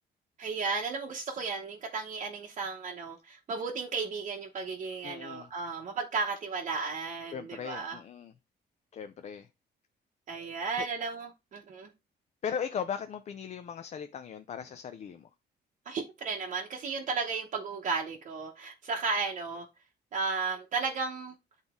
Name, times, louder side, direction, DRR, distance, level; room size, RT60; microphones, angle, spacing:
voice 1, 0.4-8.0 10.3-11.9 15.9-19.6 20.1-21.3, right 4 dB, 45° right, 0.9 m, -34 dB
voice 2, 5.0-5.5 7.3-8.3 8.9-9.5 10.4-10.9 12.4-15.3, left 7 dB, 40° left, 0.4 m, -38 dB
8.9 x 3.9 x 3.6 m
cardioid pair, 160°, 18 cm